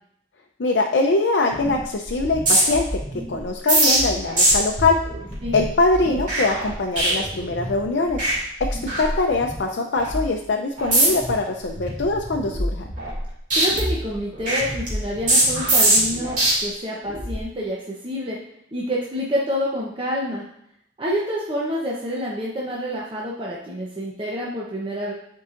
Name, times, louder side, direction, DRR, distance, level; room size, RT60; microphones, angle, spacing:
voice 1, 0.6-2.9 3.3-5.0 5.5-8.3 8.7-12.8, left 3 dB, 75° left, 2 dB, 0.5 m, -22 dB
sound 1, 1.5-1.8 2.1-7.8 8.1-8.3 8.6-9.6 10.0-10.2 10.8-11.3 11.7-13.2 13.5-16.5 17.1-17.4, right 1 dB, 45° right, 2.4 m, -22 dB
voice 2, 13.5-18.4 18.7-20.4 21.0-25.1, equal, 30° right, -4 dB, 0.8 m, -28 dB
9.9 x 4.7 x 2.5 m, 0.74 s
head